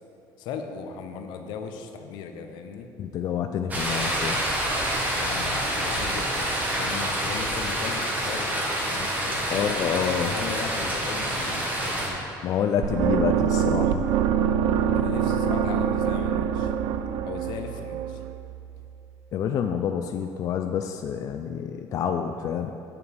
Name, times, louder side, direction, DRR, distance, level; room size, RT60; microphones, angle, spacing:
voice 1, 0.4-2.9 5.1-9.7 10.3-12.2 14.9-16.7 17.3-18.2, left 6 dB, 80° left, 6 dB, 0.7 m, -37 dB
voice 2, 3.0-4.4 9.5-10.3 12.4-14.0 19.3-22.7, left 8 dB, 50° left, 6 dB, 0.3 m, -27 dB
sound 1, 3.7-12.1, right 1 dB, 20° right, 1.3 m, -27 dB
sound 2, 12.8-18.9, right 8 dB, 70° right, 0.3 m, -25 dB
8.9 x 6.8 x 3.4 m, 2.7 s
cardioid pair, 135°, 8 cm